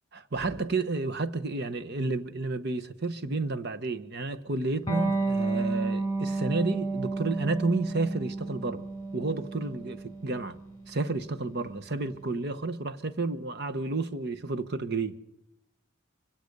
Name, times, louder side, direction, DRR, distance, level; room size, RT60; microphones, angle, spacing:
voice 1, 0.1-8.9 9.1-10.6 10.9-15.1, right 3 dB, 50° right, 1.0 m, -31 dB
Electric guitar, 4.9-12.0, right 3 dB, 15° left, 7.2 m, -32 dB
24.5 x 17.0 x 6.7 m
head